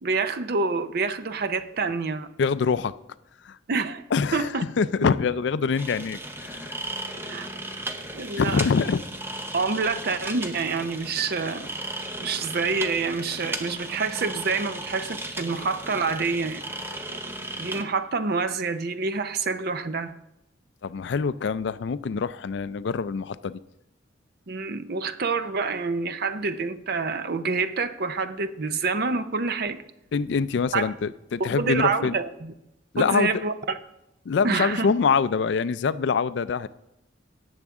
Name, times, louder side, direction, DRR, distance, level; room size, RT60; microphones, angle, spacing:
voice 1, 0.0-2.3 3.7-4.0 4.3-4.6 7.2-7.5 8.1-8.6 9.5-11.7 12.2-16.6 17.6-20.1 24.5-29.8 30.7-30.9 31.4-32.5 33.0-33.8 34.4-34.9, right 4 dB, 55° right, 11 dB, 0.6 m, -27 dB
voice 2, 2.4-2.9 3.4-3.6 4.1-6.8 8.4-9.0 20.8-23.6 30.1-32.2 32.9-33.4 34.3-36.7, left 5 dB, 65° left, 16 dB, 0.4 m, -25 dB
sound 1, 5.8-17.8, right 1 dB, 10° right, 0.7 m, -35 dB
17.5 x 7.1 x 3.7 m, 0.87 s
head